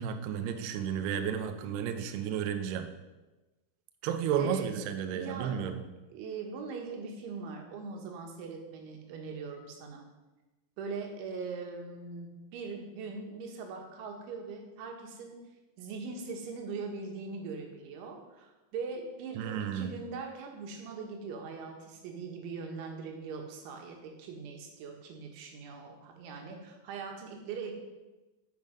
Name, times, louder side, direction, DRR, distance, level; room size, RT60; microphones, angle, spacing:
voice 1, 0.0-2.9 4.0-5.8 19.4-19.9, right 8 dB, 90° right, 7 dB, 2.3 m, -32 dB
voice 2, 4.3-5.7 6.1-10.0 10.8-15.4 15.8-27.7, right 4 dB, 70° right, 2 dB, 3.7 m, -41 dB
12.0 x 7.2 x 5.2 m, 1.1 s
omnidirectional pair, 5.8 m